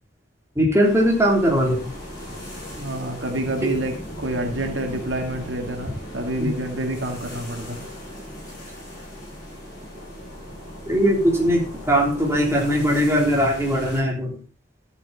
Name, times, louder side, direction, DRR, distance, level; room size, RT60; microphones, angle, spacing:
voice 1, 0.5-1.8 3.6-3.7 6.4-6.5 10.9-14.4, equal, 15° right, -2 dB, 3.4 m, -20 dB
sound 1, 0.8-14.0, equal, 20° left, 7.7 m, -37 dB
voice 2, 2.8-7.8, right 1 dB, 80° right, 3 dB, 2.0 m, -28 dB
13.0 x 8.1 x 4.2 m, 0.36 s
head